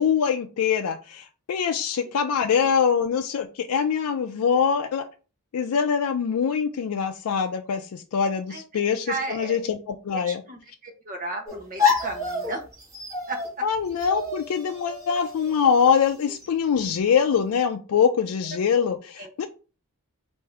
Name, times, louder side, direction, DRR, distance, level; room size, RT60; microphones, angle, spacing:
voice 1, 0.0-5.0 5.5-10.4 13.6-19.5, left 7 dB, 90° left, 0.4 m, -24 dB
voice 2, 8.5-8.8 9.1-9.6 10.1-12.6 13.3-13.6 19.2-19.3, right 2 dB, 40° right, 0.9 m, -34 dB
sound 1, 11.4-16.5, left 5 dB, 15° right, 1.8 m, -29 dB
4.6 x 2.6 x 3.3 m
head